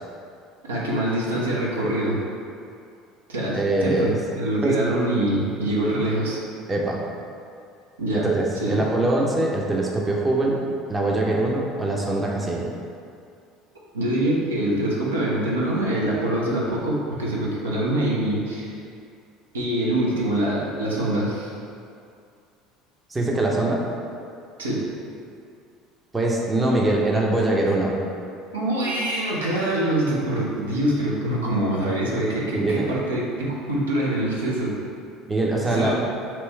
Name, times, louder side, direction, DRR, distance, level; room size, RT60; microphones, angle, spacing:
voice 1, 0.6-2.2 3.3-6.4 8.0-8.3 8.6-8.8 13.9-18.8 19.5-21.6 24.6-24.8 28.5-34.7 35.7-35.9, right 1 dB, 75° right, -5 dB, 0.7 m, -24 dB
voice 2, 3.5-4.2 4.6-4.8 6.7-7.0 8.1-10.6 10.9-12.7 23.1-23.8 26.1-27.9 32.5-32.9 35.3-36.0, right 2 dB, 15° right, -2 dB, 0.6 m, -23 dB
3.1 x 3.0 x 4.4 m, 2.4 s
figure-of-eight pair, 65°, 0 cm